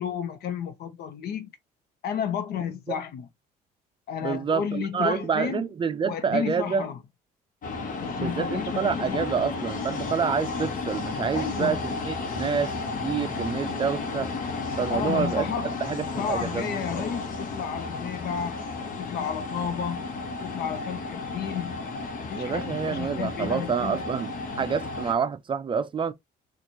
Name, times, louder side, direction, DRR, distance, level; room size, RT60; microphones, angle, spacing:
voice 1, 0.0-1.5 2.0-3.3 4.1-5.7 6.0-7.0 8.0-9.3 11.3-11.9 14.9-15.8 16.2-21.8 22.3-24.1, left 7 dB, 70° left, 0.9 m, -32 dB
voice 2, 4.2-6.8 8.2-12.7 13.0-14.3 14.8-15.5 15.8-17.0 22.4-26.1, right 6 dB, 30° right, 0.5 m, -28 dB
sound 1, 7.6-25.1, left 3 dB, 55° left, 1.1 m, -33 dB
4.2 x 2.5 x 2.9 m
cardioid pair, 110°, 17 cm